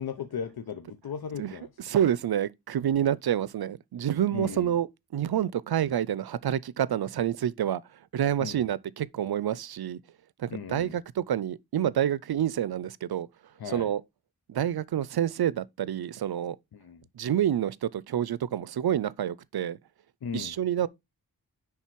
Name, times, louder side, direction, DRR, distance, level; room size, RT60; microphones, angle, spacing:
voice 1, 0.0-2.0 4.3-4.8 8.4-8.7 10.5-11.0 13.6-13.9 16.7-17.0 20.2-20.6, left 7 dB, 80° left, 0.8 m, -37 dB
voice 2, 1.9-4.9 5.1-7.8 8.1-10.0 10.4-13.3 13.7-14.0 14.5-16.6 17.2-19.8 20.3-20.9, right 10 dB, 80° right, 0.5 m, -28 dB
10.0 x 3.8 x 4.5 m
wide cardioid pair, 75°, 37 cm